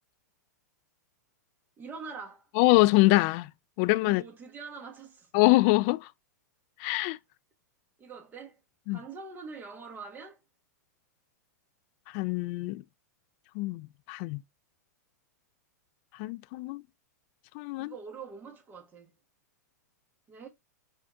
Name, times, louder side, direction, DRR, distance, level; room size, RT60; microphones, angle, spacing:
voice 1, 1.8-2.5 4.0-5.3 8.0-8.6 8.9-10.4 17.8-19.1 20.3-20.5, right 5 dB, 20° right, 1.3 m, -44 dB
voice 2, 2.6-3.5 3.8-4.2 5.3-6.1 6.8-7.2 8.9-9.0 12.1-12.8 13.6-14.4 16.2-16.8 17.5-17.9, left 21 dB, 45° left, 0.4 m, -24 dB
5.0 x 2.6 x 3.5 m
hypercardioid pair, 105°, 9 cm